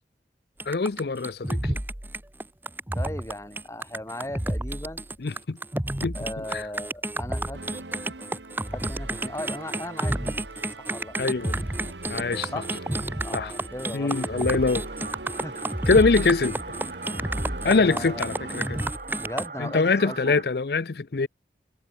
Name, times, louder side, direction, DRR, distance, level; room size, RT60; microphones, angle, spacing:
sound 1, 0.6-19.5, right 1 dB, 10° right, 0.8 m, -30 dB
voice 1, 0.7-1.8 5.2-5.6 6.0-6.7 11.2-11.6 12.1-12.5 13.3-13.5 13.9-14.9 15.9-16.7 17.6-18.8 19.6-21.3, left 4 dB, 65° left, 0.6 m, -24 dB
voice 2, 2.9-5.1 6.1-7.6 8.7-10.4 10.8-11.2 12.5-12.7 13.2-14.5 15.4-15.6 17.6-18.2 19.2-20.4, left 1 dB, 15° left, 2.3 m, -37 dB
sound 2, 7.5-18.9, right 2 dB, 90° right, 2.2 m, -42 dB
sound 3, 13.7-20.4, right 3 dB, 50° right, 2.5 m, -41 dB
head